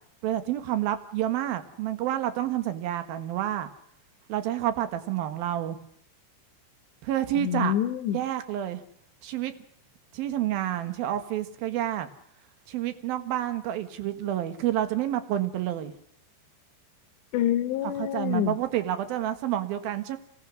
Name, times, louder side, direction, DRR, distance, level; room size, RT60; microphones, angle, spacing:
voice 1, 0.2-3.7 4.3-5.8 7.0-7.7 8.1-8.8 9.2-9.5 10.1-12.1 12.7-15.9 18.0-20.2, right 12 dB, 60° right, 9 dB, 2.7 m, -29 dB
voice 2, 7.3-8.2 17.3-18.6, left 11 dB, 70° left, 11 dB, 3.1 m, -27 dB
29.0 x 18.0 x 6.4 m, 0.71 s
omnidirectional pair, 6.0 m